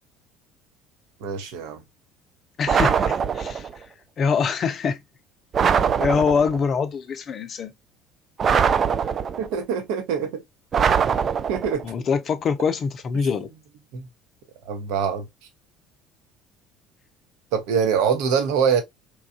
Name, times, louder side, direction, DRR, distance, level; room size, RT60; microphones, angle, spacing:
voice 1, 1.2-1.8 9.4-10.4 11.5-11.8 13.9-14.1 14.7-15.3 17.5-18.8, right 7 dB, 65° right, 0.8 m, -24 dB
voice 2, 2.6-3.7 4.2-5.0 6.0-7.7 11.8-13.5, left 6 dB, 40° left, 0.5 m, -24 dB
sound 1, 2.7-3.7 5.5-6.6 8.4-9.6 10.7-11.8, right 7 dB, 40° right, 0.3 m, -22 dB
3.0 x 2.4 x 2.4 m
figure-of-eight pair, 60°, 0 cm